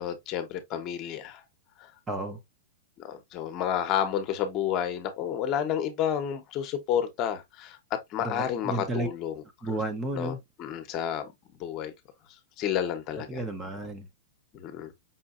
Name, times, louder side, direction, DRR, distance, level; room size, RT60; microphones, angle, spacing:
voice 1, 0.0-1.4 3.0-7.8 8.1-9.4 10.2-11.3 11.6-11.9 12.6-13.4 14.5-14.9, left 9 dB, 35° left, 1.0 m, -30 dB
voice 2, 2.1-2.4 8.2-9.1 9.6-10.4 13.3-14.1, right 2 dB, 15° right, 0.8 m, -32 dB
5.6 x 2.6 x 2.5 m
hypercardioid pair, 140°, 0 cm